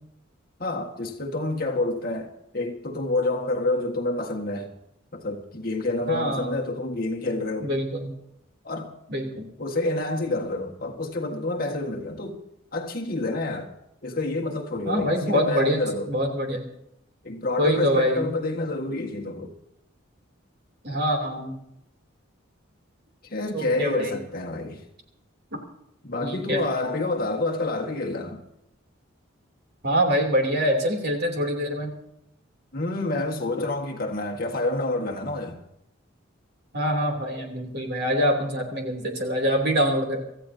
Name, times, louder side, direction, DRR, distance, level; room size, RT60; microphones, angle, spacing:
voice 1, 0.6-4.7 5.1-7.7 8.6-8.9 9.6-12.4 12.7-13.7 14.0-16.1 17.2-19.5 23.2-24.8 26.0-28.4 32.7-35.6, left 2 dB, 45° left, 1.6 m, -28 dB
voice 2, 6.1-6.5 7.6-8.1 9.1-9.5 14.8-16.6 17.6-18.3 20.8-21.5 23.5-24.2 25.5-25.6 26.2-26.6 29.8-31.9 36.7-40.2, equal, 50° right, 3.1 m, -25 dB
25.5 x 14.5 x 2.8 m
head